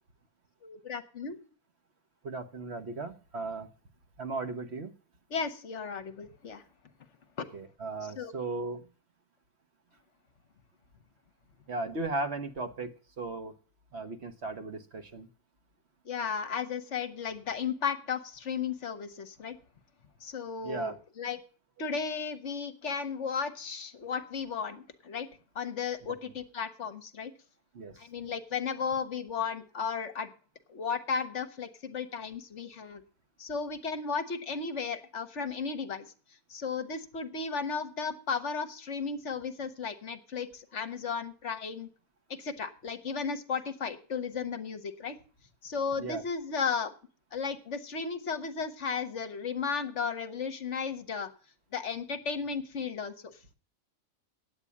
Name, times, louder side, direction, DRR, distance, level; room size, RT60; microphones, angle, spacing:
voice 1, 0.6-1.4 5.3-6.6 7.4-7.5 8.0-8.3 16.0-19.6 20.2-21.4 21.8-25.3 25.5-27.3 28.0-30.3 30.7-33.0 33.4-36.1 36.5-41.9 42.3-45.2 45.6-46.9 47.3-51.3 51.7-53.3, left 5 dB, 55° left, 11 dB, 1.1 m, -34 dB
voice 2, 2.2-3.7 4.2-4.9 7.5-8.8 11.7-13.5 13.9-15.3 20.6-21.0 27.7-27.9 46.0-46.2, right 3 dB, 50° right, 8 dB, 1.2 m, -36 dB
9.6 x 8.6 x 8.3 m, 0.38 s
omnidirectional pair, 1.5 m